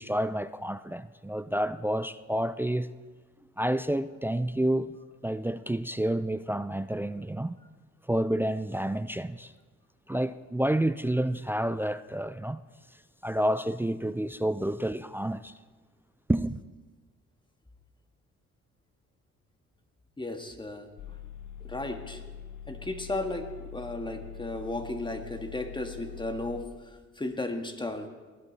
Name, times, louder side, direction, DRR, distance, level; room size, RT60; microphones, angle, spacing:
voice 1, 0.0-2.9 3.6-5.0 5.2-7.6 8.1-9.5 10.1-12.6 13.2-15.5 16.3-16.6, right 1 dB, 5° right, 0.3 m, -29 dB
voice 2, 20.2-21.2 21.6-22.2 22.7-28.1, left 2 dB, 15° left, 1.5 m, -35 dB
sound 1, 21.0-26.6, left 8 dB, 80° left, 1.0 m, -44 dB
19.0 x 12.0 x 4.1 m
cardioid pair, 90°, 30 cm